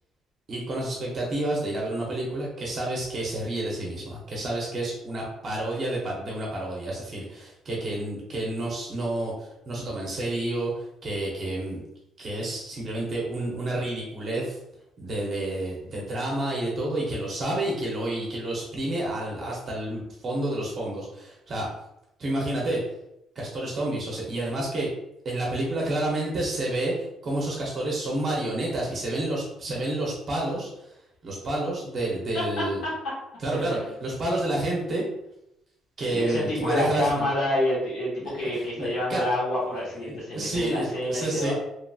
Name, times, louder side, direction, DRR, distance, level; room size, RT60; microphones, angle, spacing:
voice 1, 0.5-11.8 12.2-14.6 15.0-21.7 22.2-22.8 23.4-24.9 25.2-30.9 31.2-32.8 33.4-35.0 36.0-37.3 38.2-39.3 40.1-41.5, right 1 dB, 35° right, -3 dB, 0.7 m, -29 dB
voice 2, 32.3-33.1 33.5-33.9 36.1-41.5, left 1 dB, 75° left, -7 dB, 1.3 m, -28 dB
2.9 x 2.7 x 2.3 m, 0.83 s
cardioid pair, 165°, 0 cm